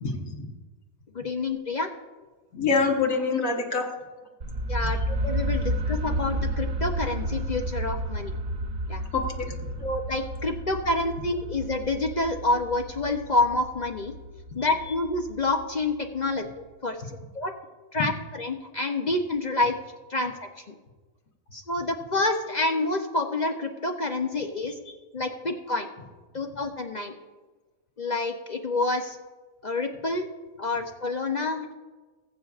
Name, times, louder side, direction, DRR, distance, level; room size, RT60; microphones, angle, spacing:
voice 1, 0.0-0.5 2.5-3.9 9.1-9.6, left 4 dB, 70° left, 1 dB, 1.6 m, -25 dB
voice 2, 1.1-1.9 4.7-8.4 8.9-9.0 9.8-14.1 14.5-17.5 17.9-19.7 20.1-20.7 21.5-24.8 25.1-25.9 26.3-27.2 28.0-29.2 29.6-30.3 30.6-31.7, left 2 dB, 45° left, 4 dB, 0.6 m, -28 dB
sound 1, 4.4-16.2, right 1 dB, 50° right, 1.3 m, -31 dB
20.5 x 8.0 x 2.4 m, 1.3 s
omnidirectional pair, 1.5 m